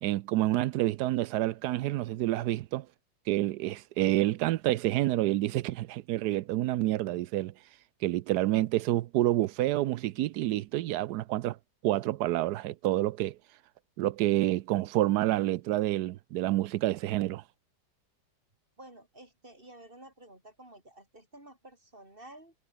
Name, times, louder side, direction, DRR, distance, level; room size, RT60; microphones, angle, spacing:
voice 1, 0.0-2.9 3.3-7.5 8.0-11.6 11.8-13.4 14.0-17.4, right 15 dB, 70° right, 1.1 m, -28 dB
voice 2, 18.8-22.5, right 1 dB, 30° right, 5.7 m, -52 dB
omnidirectional pair, 1.9 m